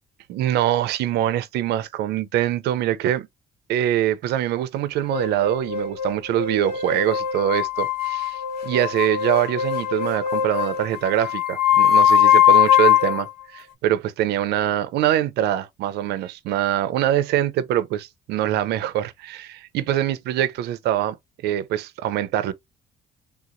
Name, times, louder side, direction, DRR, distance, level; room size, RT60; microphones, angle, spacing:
voice 1, 0.3-3.3 3.7-21.2 21.4-22.5, right 12 dB, 75° right, 0.6 m, -24 dB
sound 1, 5.1-13.3, left 9 dB, 75° left, 1.5 m, -20 dB
3.5 x 2.8 x 2.5 m
cardioid pair, 110°, 17 cm